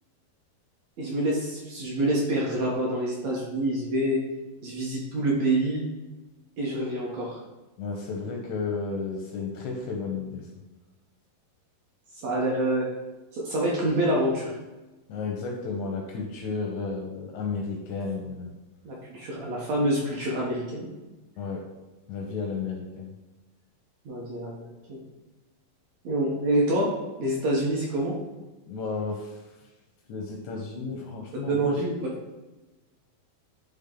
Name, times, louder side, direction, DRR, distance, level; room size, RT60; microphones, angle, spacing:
voice 1, 1.0-4.2 4.6-5.8 6.6-7.4 12.1-12.9 13.3-14.5 18.9-20.9 24.1-25.0 26.0-26.9 27.2-28.2 31.3-32.1, right 1 dB, 65° right, -3 dB, 1.8 m, -27 dB
voice 2, 7.8-10.5 15.1-18.5 21.4-21.7 22.1-23.1 28.7-29.4 30.1-31.8, left 4 dB, 80° left, 1 dB, 1.6 m, -33 dB
10.0 x 3.6 x 3.8 m, 1.1 s
omnidirectional pair, 4.3 m